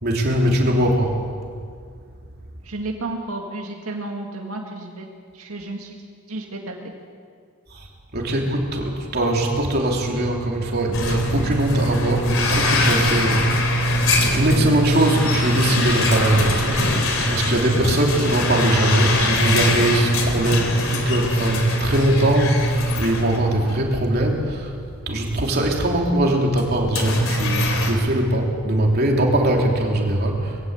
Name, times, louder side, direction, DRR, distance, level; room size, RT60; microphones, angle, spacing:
voice 1, 0.0-1.2 7.7-7.9 8.1-13.5 14.1-24.8 25.1-30.6, right 1 dB, 45° right, 0 dB, 3.3 m, -21 dB
voice 2, 2.6-6.0 6.3-6.9, right 2 dB, 90° right, 1 dB, 2.1 m, -32 dB
sound 1, 10.9-24.0 24.4-24.5 25.3-25.4 26.5-27.9, left 1 dB, 70° left, 3.4 m, -22 dB
21.5 x 16.5 x 8.1 m, 2.1 s
head